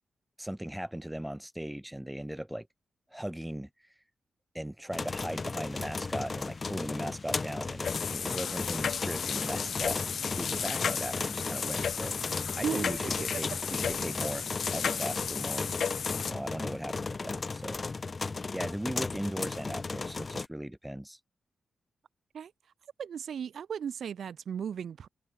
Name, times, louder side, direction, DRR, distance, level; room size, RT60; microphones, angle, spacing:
voice 1, 0.4-2.7 3.1-3.7 4.5-10.0 10.3-12.2 12.5-14.4 14.7-15.7 16.3-17.8 18.5-21.2, right 1 dB, 5° right, 2.6 m, -38 dB
sound 1, 4.9-20.5, left 4 dB, 30° left, 2.9 m, -36 dB
sound 2, 7.8-16.3, left 7 dB, 65° left, 0.4 m, -34 dB
voice 2, 12.6-13.4 22.3-22.5 23.0-25.1, right 8 dB, 70° right, 1.6 m, -36 dB
wide cardioid pair, 140°, 0 cm